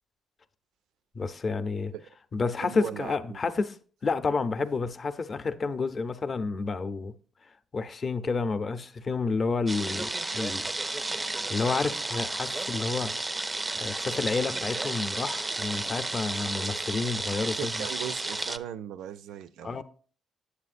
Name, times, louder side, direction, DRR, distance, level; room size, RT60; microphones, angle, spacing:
voice 1, 1.1-1.9 2.3-3.8 4.0-7.1 7.4-10.7 11.2-13.1 13.7-17.9 19.6-19.8, left 4 dB, 40° left, 0.6 m, -30 dB
voice 2, 2.6-3.4 17.6-19.8, right 10 dB, 85° right, 0.4 m, -38 dB
sound 1, 9.7-18.6, right 2 dB, 20° right, 0.4 m, -32 dB
8.3 x 7.6 x 2.5 m
cardioid pair, 90°, 0 cm